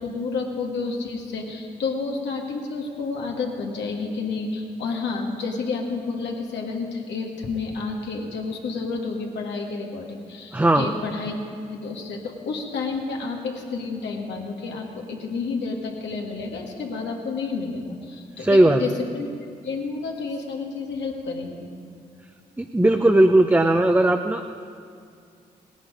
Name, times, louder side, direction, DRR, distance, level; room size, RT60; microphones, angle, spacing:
voice 1, 0.0-11.4 11.7-19.3 19.6-21.7, left 4 dB, 75° left, 1 dB, 1.8 m, -30 dB
voice 2, 10.5-10.9 18.4-18.8 22.6-24.5, right 1 dB, 10° right, 4 dB, 0.8 m, -17 dB
17.5 x 10.5 x 5.0 m, 2.3 s
hypercardioid pair, 45°, 19 cm